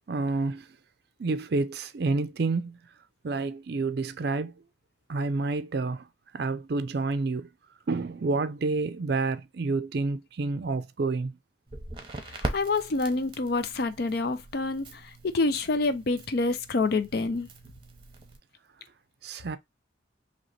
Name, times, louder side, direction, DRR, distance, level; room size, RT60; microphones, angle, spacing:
voice 1, 0.1-0.7 1.2-2.8 3.2-4.5 5.1-6.1 6.3-7.5 7.9-11.4 19.2-19.6, right 3 dB, 55° right, 0.4 m, -29 dB
Crackle, 11.7-18.4, right 2 dB, 25° right, 0.8 m, -41 dB
voice 2, 12.4-17.5, left 3 dB, 50° left, 0.5 m, -27 dB
3.1 x 2.9 x 4.1 m
head